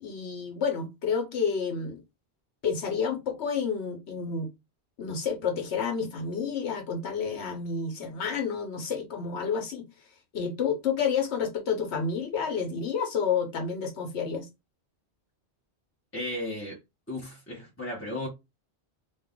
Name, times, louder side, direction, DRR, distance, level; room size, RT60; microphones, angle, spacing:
voice 1, 0.0-2.0 2.6-4.5 5.0-9.8 10.3-14.5, left 6 dB, 80° left, 1.0 m, -30 dB
voice 2, 16.1-16.8 17.1-18.3, left 1 dB, 15° left, 0.8 m, -35 dB
2.8 x 2.3 x 3.5 m
omnidirectional pair, 1.1 m